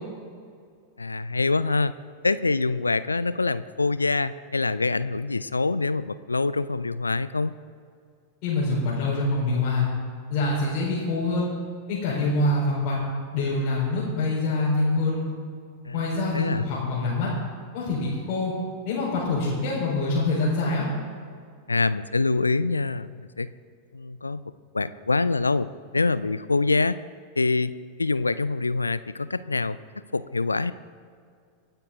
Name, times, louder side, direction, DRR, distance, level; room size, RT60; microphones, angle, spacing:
voice 1, 1.0-1.9 2.2-7.5 15.8-16.7 21.7-23.5 23.9-24.4 24.7-25.7 25.9-27.0 27.4-27.7 28.0-29.8 30.1-30.7, left 3 dB, 80° left, 16 dB, 0.4 m, -25 dB
voice 2, 8.4-9.9 10.3-11.5 11.9-13.0 13.3-15.3 15.9-17.3 17.7-18.5 18.8-20.9, left 2 dB, 45° left, -7 dB, 4.4 m, -25 dB
25.5 x 9.1 x 3.8 m, 2.2 s
figure-of-eight pair, 90°, 0 cm